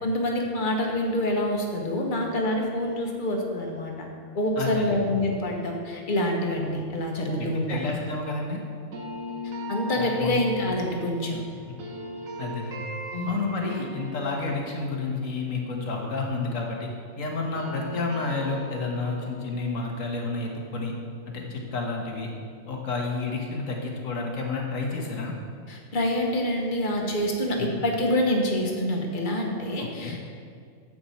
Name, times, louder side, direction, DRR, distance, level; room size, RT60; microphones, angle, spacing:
voice 1, 0.0-4.1 4.3-8.0 9.7-11.4 13.1-13.4 14.2-14.3 25.7-30.2, left 1 dB, 40° left, 1 dB, 1.3 m, -26 dB
voice 2, 4.6-5.1 7.4-8.6 10.0-10.4 12.4-12.9 13.3-16.9 17.2-20.9 21.3-22.3 22.7-25.3 27.6-27.8 29.8-30.2, left 3 dB, 80° left, 0 dB, 1.7 m, -30 dB
sound 1, 8.9-17.0 17.3-22.3, equal, 90° right, 1.6 m, -40 dB
9.5 x 7.8 x 4.2 m, 2.3 s
omnidirectional pair, 1.4 m